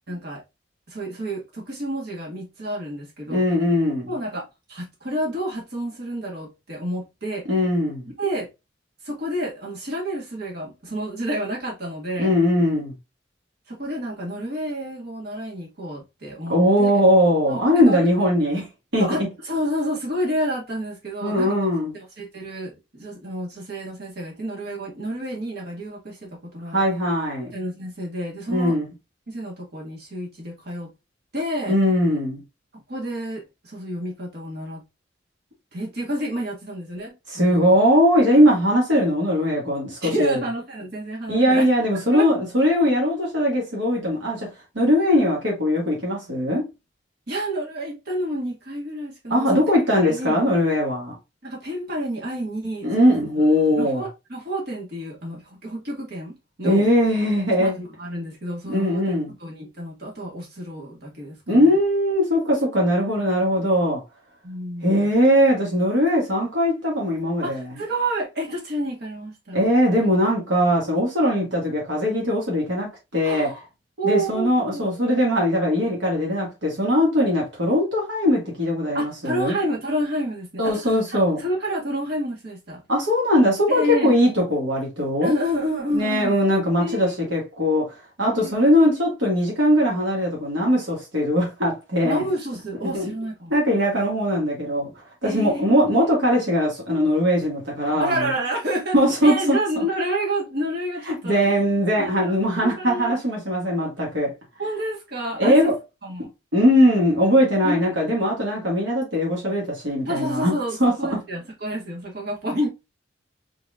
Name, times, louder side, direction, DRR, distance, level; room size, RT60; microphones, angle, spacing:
voice 1, 0.1-0.4 0.9-3.4 4.1-7.4 8.2-8.5 9.0-12.3 13.7-16.9 17.5-18.1 19.0-21.6 21.9-26.8 27.5-28.8 29.3-30.9 31.3-31.8 32.7-34.8 35.7-37.8 40.0-41.7 42.1-42.3 47.3-49.6 49.9-50.4 51.4-53.1 53.7-56.8 57.6-59.1 59.4-61.7 64.4-65.1 67.4-69.7 73.2-73.6 74.0-74.9 78.9-82.8 83.7-84.1 85.2-86.4 86.8-87.1 88.4-88.5 92.0-93.5 95.2-96.1 98.0-98.9 99.2-101.5 102.0-103.1 104.6-105.7 106.0-106.3 107.6-108.1 110.0-112.7, right 1 dB, 60° right, 2.2 m, -29 dB
voice 2, 3.3-4.1 7.5-8.1 12.2-12.9 16.5-18.7 18.9-19.3 21.2-21.9 26.7-27.5 28.5-28.9 31.7-32.4 37.3-40.4 41.3-44.5 44.8-46.7 49.3-51.2 52.8-54.0 56.6-57.7 58.7-59.3 61.5-64.0 64.8-67.6 69.5-73.5 74.0-79.6 80.6-81.4 82.9-85.4 85.9-92.2 92.9-93.1 93.5-94.9 95.2-98.3 98.9-99.8 101.1-104.3 105.4-105.7 106.5-110.5 110.8-110.9, equal, 80° right, 2.0 m, -20 dB
4.6 x 4.2 x 2.5 m
head